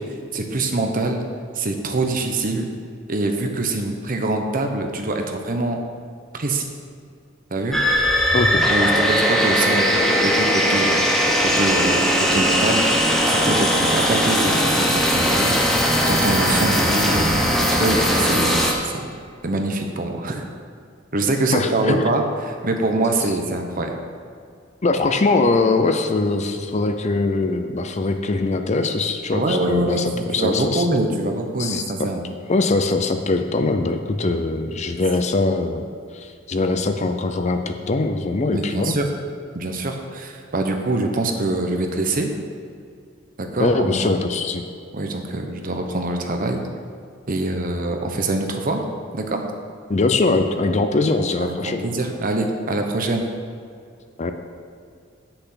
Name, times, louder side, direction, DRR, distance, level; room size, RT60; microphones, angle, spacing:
voice 1, 0.3-1.2 1.5-2.7 3.1-5.8 6.3-6.7 7.5-7.8 8.7-11.1 11.4-12.8 13.3-17.3 17.6-19.1 19.4-20.5 21.1-24.0 29.3-32.2 38.5-39.1 39.5-42.3 43.4-44.1 44.9-46.7 47.3-48.8 49.1-49.4 51.4-53.3, right 2 dB, 45° right, 4 dB, 0.9 m, -24 dB
sound 1, 7.7-18.7, equal, ahead, 1.0 m, -19 dB
voice 2, 8.3-8.7 21.5-22.0 24.8-30.9 31.6-32.1 32.5-35.8 36.1-39.0 43.6-44.6 49.9-51.8 54.2-54.3, left 3 dB, 35° left, 7 dB, 0.5 m, -22 dB
8.1 x 6.8 x 5.8 m, 2.3 s
head